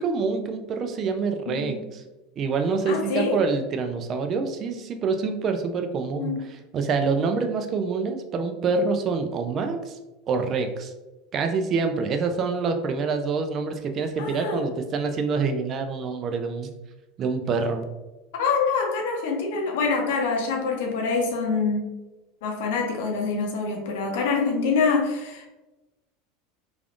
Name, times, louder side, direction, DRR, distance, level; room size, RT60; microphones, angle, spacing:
voice 1, 0.0-2.0 2.4-10.0 10.3-10.9 11.3-16.7 17.2-17.8, right 4 dB, 40° right, 6 dB, 0.4 m, -26 dB
voice 2, 1.5-1.8 2.9-3.4 6.2-6.4 14.2-14.7 18.4-21.8 22.4-25.5, left 4 dB, 70° left, 1 dB, 0.6 m, -25 dB
3.2 x 2.5 x 2.4 m, 1.1 s
hypercardioid pair, 85°, 0 cm